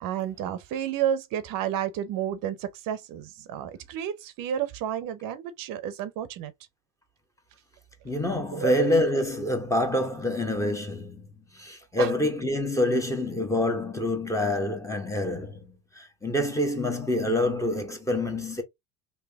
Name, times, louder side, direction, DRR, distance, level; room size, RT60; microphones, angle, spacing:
voice 1, 0.0-6.5 8.5-8.7 12.0-12.1, right 10 dB, 60° right, 0.7 m, -31 dB
voice 2, 8.0-11.3 11.5-18.6, left 1 dB, 10° left, 0.9 m, -26 dB
3.4 x 2.8 x 3.4 m
cardioid pair, 115°, 37 cm